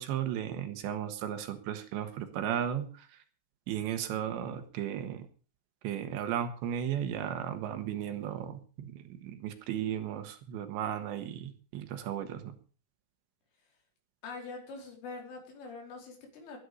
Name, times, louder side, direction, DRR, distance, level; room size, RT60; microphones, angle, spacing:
voice 1, 0.0-3.2 3.7-5.3 5.8-12.6, right 10 dB, 75° right, 8 dB, 3.5 m, -35 dB
voice 2, 14.2-16.6, left 3 dB, 85° left, 1 dB, 7.1 m, -44 dB
20.0 x 9.8 x 5.3 m, 0.39 s
omnidirectional pair, 5.5 m